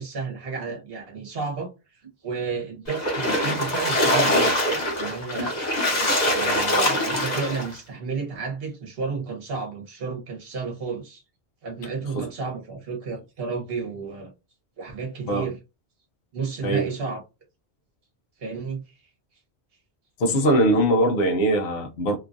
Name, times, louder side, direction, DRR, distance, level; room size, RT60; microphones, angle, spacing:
voice 1, 0.0-1.7 2.2-4.5 5.0-5.6 6.2-11.2 11.6-14.3 14.8-15.6 16.3-17.2 18.4-18.9, right 4 dB, 60° right, 1.2 m, -32 dB
Splash splatter, 2.9-7.7, left 1 dB, 40° left, 1.1 m, -23 dB
voice 2, 20.2-22.2, right 1 dB, 60° left, 0.9 m, -21 dB
3.0 x 2.4 x 2.5 m
omnidirectional pair, 1.1 m